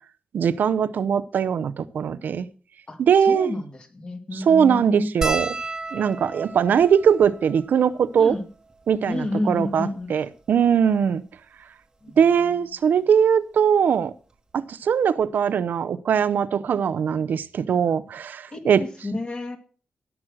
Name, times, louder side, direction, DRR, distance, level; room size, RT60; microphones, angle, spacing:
voice 1, 0.3-2.5 3.0-3.5 4.5-5.5 5.9-8.4 8.9-11.2 12.2-14.1 14.5-18.8, right 7 dB, 80° right, 0.6 m, -21 dB
voice 2, 2.9-5.1 8.2-8.5 9.1-10.1 12.0-12.5 18.5-19.6, left 2 dB, 35° left, 2.1 m, -30 dB
sound 1, 5.2-9.8 10.6-10.7 10.9-11.1 12.3-12.5 14.0-14.1 14.3-14.5, right 3 dB, 25° right, 1.1 m, -34 dB
17.0 x 6.2 x 6.3 m
wide cardioid pair, 135°, 3 cm